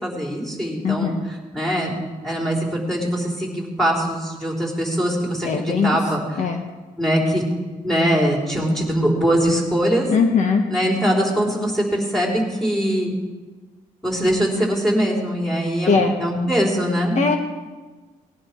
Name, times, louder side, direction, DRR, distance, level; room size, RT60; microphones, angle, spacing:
voice 1, 0.0-1.1 1.5-1.9 2.2-6.5 7.0-7.4 7.8-10.1 10.7-13.1 14.0-17.2, equal, 5° left, -2 dB, 4.4 m, -22 dB
voice 2, 0.8-1.2 5.4-6.0 6.4-6.7 10.1-10.6 15.9-16.2 17.1-17.4, left 5 dB, 55° left, 4 dB, 1.4 m, -20 dB
20.0 x 10.5 x 4.7 m, 1.3 s
cardioid pair, 80°, 14 cm